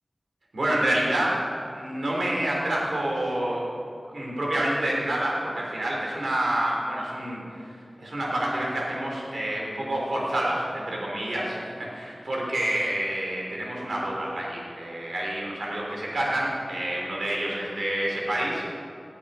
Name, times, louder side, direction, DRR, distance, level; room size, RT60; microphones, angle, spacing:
voice 1, 0.5-1.4 1.7-3.6 4.1-7.4 8.0-18.8, right 1 dB, 85° right, -3 dB, 3.3 m, -28 dB
18.0 x 7.1 x 5.6 m, 2.5 s
wide cardioid pair, 55°, 0 cm